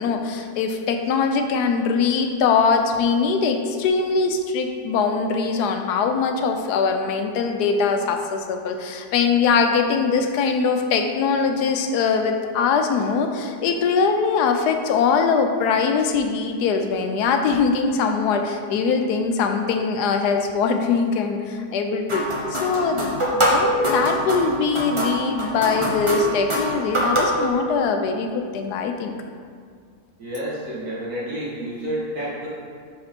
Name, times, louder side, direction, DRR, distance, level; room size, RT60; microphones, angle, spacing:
voice 1, 0.0-22.2 22.5-29.1, left 5 dB, 85° left, 5 dB, 1.2 m, -22 dB
sound 1, 22.1-27.5, equal, 25° right, 0.7 m, -24 dB
voice 2, 30.2-32.5, right 1 dB, 70° right, -9 dB, 2.6 m, -29 dB
5.2 x 5.1 x 5.1 m, 2.1 s
omnidirectional pair, 1.7 m